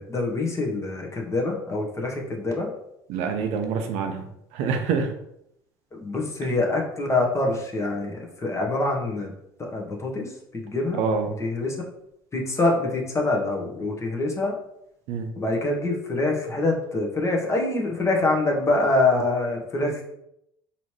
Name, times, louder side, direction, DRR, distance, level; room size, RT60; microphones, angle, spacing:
voice 1, 0.0-2.7 5.9-9.3 9.6-11.0 11.4-11.7 12.3-14.5 15.4-20.0, left 2 dB, 25° left, 0 dB, 1.1 m, -25 dB
voice 2, 3.1-4.2 4.5-5.1 10.9-11.3 15.1-15.3, right 5 dB, 65° right, 5 dB, 0.6 m, -26 dB
4.1 x 2.9 x 3.1 m, 0.79 s
hypercardioid pair, 70°, 12 cm